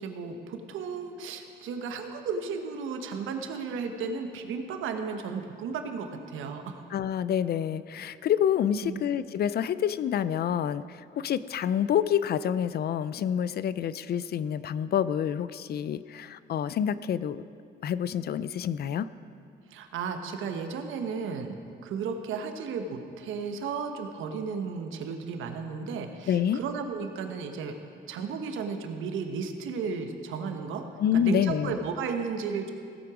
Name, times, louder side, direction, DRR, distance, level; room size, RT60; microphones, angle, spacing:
voice 1, 0.0-6.8 8.8-9.0 19.7-27.7 28.1-30.8 31.1-32.7, right 5 dB, 85° right, 6 dB, 1.1 m, -34 dB
voice 2, 6.9-17.4 17.8-19.1 26.3-26.6 31.0-31.7, left 9 dB, 55° left, 16 dB, 0.4 m, -27 dB
16.5 x 7.6 x 5.0 m, 2.3 s
cardioid pair, 90°, 20 cm